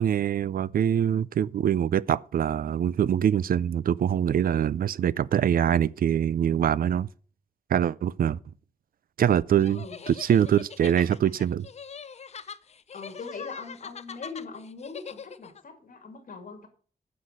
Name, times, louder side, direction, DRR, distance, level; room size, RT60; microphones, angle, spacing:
voice 1, 0.0-7.1 7.7-8.4 9.2-11.7, right 9 dB, 70° right, 0.4 m, -24 dB
sound 1, 9.6-15.6, left 6 dB, 45° left, 0.6 m, -43 dB
voice 2, 9.7-10.0 12.9-16.7, left 4 dB, 65° left, 2.5 m, -41 dB
9.6 x 6.5 x 6.6 m
wide cardioid pair, 140°, 15 cm